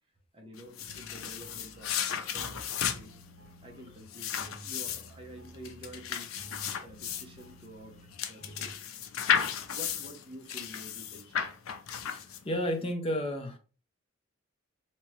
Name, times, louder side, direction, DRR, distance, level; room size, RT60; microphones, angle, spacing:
voice 1, 0.3-2.6 2.9-3.2 3.6-6.3 6.8-7.9 8.3-11.6, equal, 25° right, 0.8 m, -49 dB
sound 1, 0.6-12.7, left 8 dB, 85° left, 0.5 m, -34 dB
sound 2, 0.9-8.8, right 1 dB, 70° right, 1.2 m, -52 dB
voice 2, 12.1-13.6, equal, 25° left, 0.6 m, -32 dB
3.4 x 2.8 x 3.1 m
head